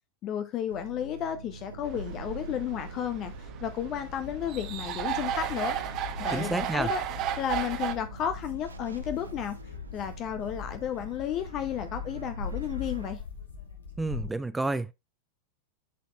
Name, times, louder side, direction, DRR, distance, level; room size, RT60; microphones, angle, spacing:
voice 1, 0.2-5.8 6.2-7.0 7.4-9.6 9.9-13.2, left 9 dB, 35° left, 0.7 m, -33 dB
sound 1, 0.7-13.1, right 3 dB, 75° right, 0.7 m, -44 dB
sound 2, 1.8-8.0, right 11 dB, 40° right, 1.0 m, -34 dB
sound 3, 4.1-14.3, left 5 dB, 75° left, 1.6 m, -41 dB
voice 2, 6.3-6.9 14.0-14.9, right 2 dB, 10° right, 0.4 m, -30 dB
11.0 x 4.2 x 2.4 m
figure-of-eight pair, 90°, 0 cm